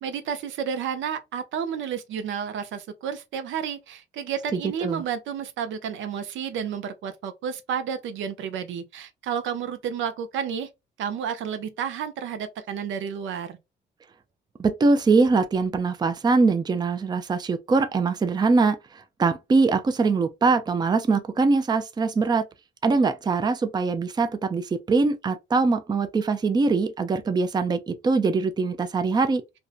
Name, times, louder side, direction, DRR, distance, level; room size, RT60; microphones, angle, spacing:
voice 1, 0.0-10.7 11.0-13.6, right 7 dB, 75° right, 0.5 m, -31 dB
voice 2, 4.5-5.0 14.6-22.4 22.8-29.4, right 4 dB, 20° right, 0.4 m, -22 dB
2.6 x 2.1 x 2.4 m
cardioid pair, 90°, 20 cm